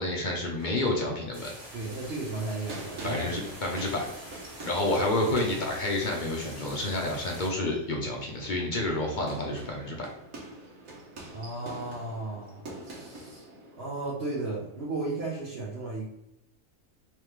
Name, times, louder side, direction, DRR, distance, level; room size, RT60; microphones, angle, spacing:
voice 1, 0.0-1.5 3.0-4.1 4.7-10.1, left 1 dB, 45° left, -1 dB, 0.6 m, -29 dB
sound 1, 0.6-15.1, right 2 dB, 75° right, 1.4 m, -46 dB
sound 2, 1.3-7.5, right 1 dB, 30° right, 1.1 m, -46 dB
voice 2, 1.7-3.3 11.3-13.4 13.8-16.1, right 2 dB, 50° right, -6 dB, 1.0 m, -35 dB
3.6 x 3.1 x 3.1 m, 0.85 s
omnidirectional pair, 1.4 m